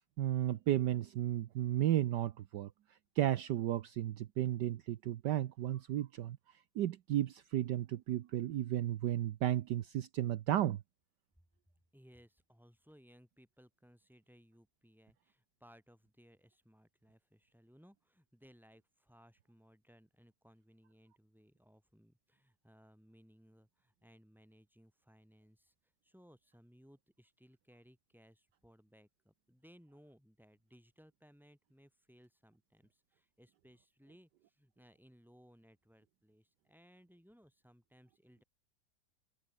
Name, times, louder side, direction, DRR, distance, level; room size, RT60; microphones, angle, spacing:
voice 1, 0.2-2.7 3.2-6.4 6.8-10.8, right 12 dB, 70° right, 1.3 m, -33 dB
voice 2, 11.9-25.7 26.0-38.4, equal, ahead, 7.5 m, -63 dB
omnidirectional pair, 2.0 m